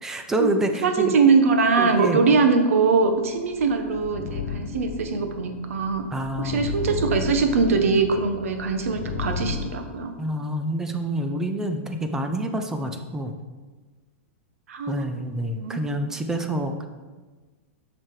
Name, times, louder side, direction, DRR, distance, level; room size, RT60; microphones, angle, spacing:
voice 1, 0.0-1.2 1.8-2.2 6.1-6.7 10.2-13.3 14.9-16.9, right 1 dB, 5° right, 6 dB, 0.5 m, -27 dB
voice 2, 0.8-6.0 6.4-10.1 14.7-15.1 15.5-15.8, right 4 dB, 80° right, 6 dB, 1.3 m, -22 dB
sound 1, 3.3-9.7, left 5 dB, 55° left, 1.8 m, -33 dB
7.7 x 5.9 x 4.8 m, 1.3 s
supercardioid pair, 170°, 7 cm